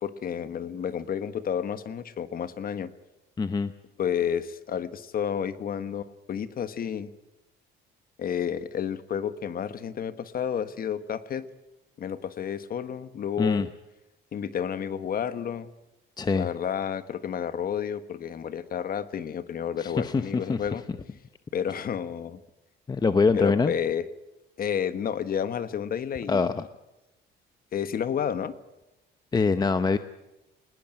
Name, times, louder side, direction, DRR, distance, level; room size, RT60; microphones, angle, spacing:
voice 1, 0.0-2.9 4.0-7.1 8.2-11.4 12.0-13.7 14.3-15.7 16.3-20.8 21.5-22.4 23.3-24.0 24.6-26.5 27.7-28.5, left 8 dB, 45° left, 12 dB, 1.4 m, -31 dB
voice 2, 3.4-3.7 13.4-13.7 16.2-16.5 19.8-20.6 22.9-23.7 26.3-26.6 29.3-30.0, left 4 dB, 20° left, 11 dB, 0.8 m, -24 dB
21.0 x 20.0 x 9.0 m, 0.97 s
cardioid pair, 145°, 21 cm